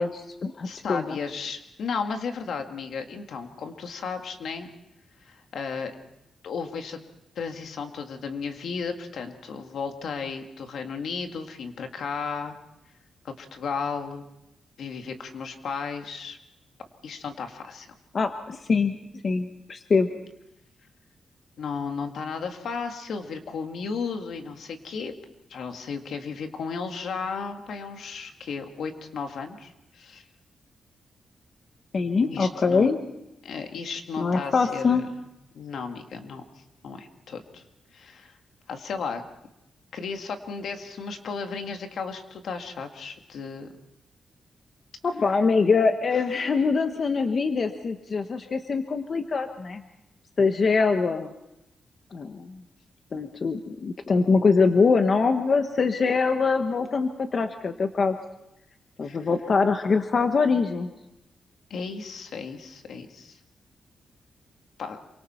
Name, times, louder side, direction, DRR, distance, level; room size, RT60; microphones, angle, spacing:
voice 1, 0.0-1.2 18.1-19.0 19.2-20.1 31.9-33.0 34.2-35.0 45.0-49.8 50.4-51.3 52.1-52.6 53.1-58.2 59.0-60.9, left 4 dB, 45° left, 7 dB, 1.1 m, -23 dB
voice 2, 0.6-4.7 5.2-5.9 6.4-7.0 7.4-12.6 13.2-14.3 14.8-16.4 17.0-17.9 21.6-25.1 25.5-30.3 32.2-32.9 33.4-35.1 35.5-36.4 36.8-37.6 37.9-38.4 38.7-39.2 39.9-43.7 59.0-59.3 61.7-63.4 64.8-65.0, left 5 dB, 75° left, 5 dB, 2.0 m, -34 dB
27.5 x 24.5 x 4.4 m, 0.88 s
wide cardioid pair, 130°, 0 cm